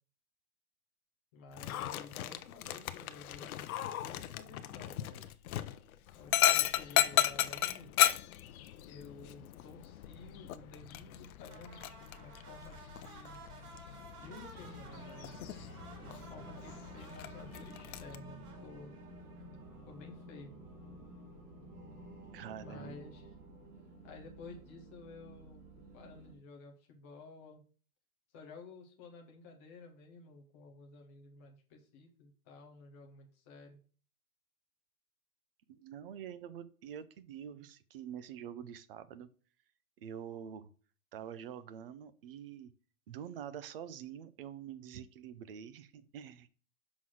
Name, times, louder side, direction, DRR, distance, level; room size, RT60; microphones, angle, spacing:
voice 1, 1.3-3.5 4.0-5.4 6.1-7.9 8.8-11.8 12.1-13.4 14.2-15.3 16.0-18.9 19.9-20.5 22.6-23.3 24.0-25.6 25.9-27.6 28.3-33.8, left 3 dB, 10° left, 0 dB, 0.4 m, -52 dB
Dog, 1.5-18.2, left 12 dB, 70° left, 0.7 m, -35 dB
sound 1, 11.5-19.9, right 4 dB, 85° right, 3.1 m, -55 dB
sound 2, 14.5-26.3, right 1 dB, 20° right, 1.6 m, -52 dB
voice 2, 22.3-23.1 35.7-39.3 40.0-40.7 41.1-42.7 43.1-46.5, right 9 dB, 40° right, 14 dB, 0.5 m, -46 dB
6.1 x 3.8 x 6.2 m, 0.41 s
supercardioid pair, 170°, 45 cm